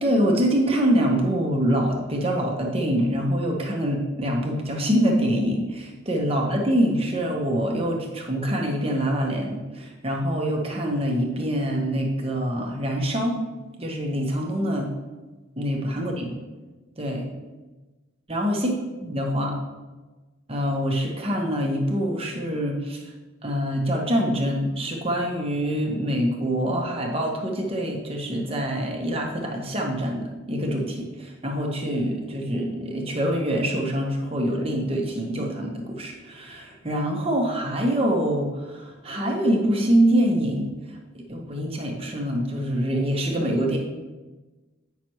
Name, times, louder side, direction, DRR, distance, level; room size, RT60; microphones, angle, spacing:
voice 1, 0.0-13.4 13.8-14.9 15.6-16.3 17.0-17.3 18.3-18.7 19.0-19.5 20.5-23.0 23.4-41.0 41.3-43.8, equal, 30° right, 0 dB, 1.0 m, -25 dB
8.8 x 5.9 x 3.0 m, 1.2 s
head